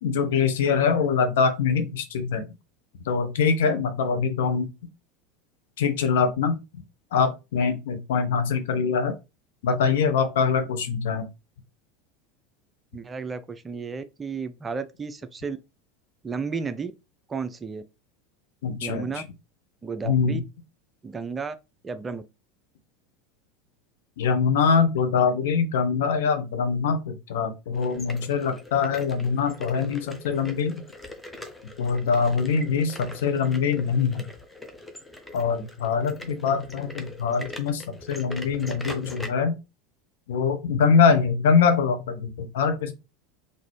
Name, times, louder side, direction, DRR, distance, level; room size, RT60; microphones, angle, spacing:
voice 1, 0.0-2.4 3.1-4.7 5.8-6.6 7.1-9.1 9.6-11.3 18.6-19.1 20.0-20.4 24.2-30.8 31.8-34.2 35.3-39.5 40.3-42.9, left 6 dB, 60° left, 0.7 m, -23 dB
voice 2, 12.9-15.6 16.2-16.9 17.3-17.8 18.8-19.2 19.8-20.4 21.0-21.6 21.8-22.2, right 5 dB, 20° right, 0.4 m, -33 dB
sound 1, 27.7-39.3, left 2 dB, 5° left, 0.8 m, -42 dB
3.9 x 2.6 x 3.1 m
figure-of-eight pair, 75°, 0 cm